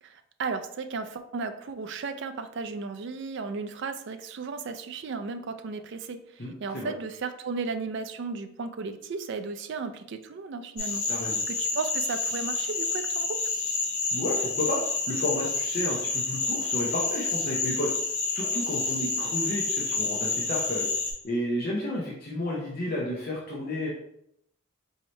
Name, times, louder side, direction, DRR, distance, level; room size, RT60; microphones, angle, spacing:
voice 1, 0.0-11.0 11.5-13.4, right 4 dB, 55° right, 9 dB, 0.3 m, -35 dB
voice 2, 6.4-6.9 11.1-11.4 14.1-14.8 15.1-17.9 18.3-20.9 21.2-23.9, left 1 dB, 45° left, -4 dB, 0.6 m, -31 dB
sound 1, 10.8-21.1, left 3 dB, 65° left, 1.4 m, -29 dB
4.3 x 2.7 x 3.1 m, 0.74 s
head